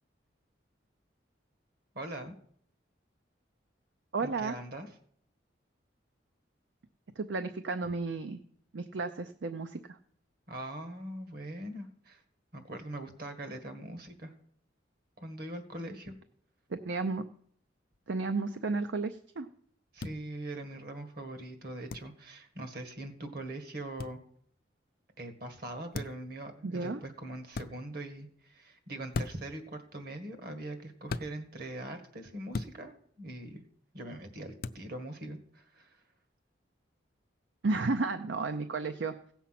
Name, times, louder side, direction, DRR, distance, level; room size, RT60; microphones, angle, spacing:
voice 1, 1.9-2.3 4.2-4.9 10.5-12.2 12.5-14.3 15.2-16.2 19.9-24.2 25.2-33.6 33.9-36.0, right 1 dB, 55° right, 7 dB, 1.8 m, -42 dB
voice 2, 4.1-4.6 7.2-8.4 8.7-10.0 16.7-17.2 18.1-19.5 26.6-27.0 37.6-39.1, right 3 dB, 70° right, 9 dB, 0.6 m, -33 dB
sound 1, 20.0-20.1 21.9-22.1 24.0-24.2 25.9-26.3 27.5-27.7 29.1-29.5 31.1-31.3 32.5-32.8 34.6-34.8, left 3 dB, 50° left, 0.4 m, -36 dB
16.5 x 7.2 x 5.9 m, 0.63 s
head